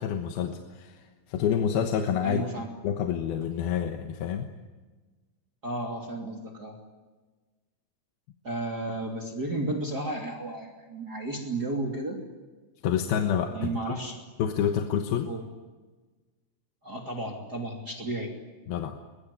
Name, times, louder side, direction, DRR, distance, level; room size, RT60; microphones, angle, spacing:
voice 1, 0.0-2.4 2.8-4.5 12.8-13.7 14.4-15.3 18.7-19.0, left 8 dB, 75° left, 5 dB, 3.1 m, -28 dB
voice 2, 2.2-2.7 5.6-6.8 8.4-12.2 13.5-14.3 15.3-15.4 16.8-18.3, right 2 dB, 25° right, 0 dB, 3.0 m, -33 dB
23.0 x 22.0 x 9.8 m, 1.3 s
omnidirectional pair, 4.4 m